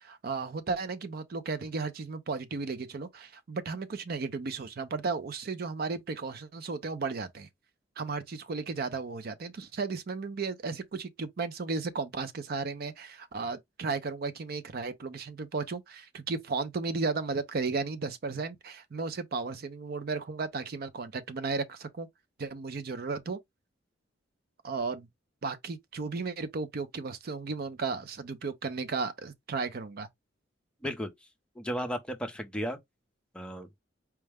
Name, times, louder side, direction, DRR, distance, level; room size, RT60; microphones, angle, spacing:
voice 1, 0.0-7.5 8.0-22.1 22.4-23.4 24.6-25.1 25.4-30.1, right 4 dB, 50° right, 0.5 m, -34 dB
voice 2, 31.6-32.8 33.3-33.8, equal, 5° left, 0.6 m, -34 dB
4.5 x 2.1 x 3.3 m
head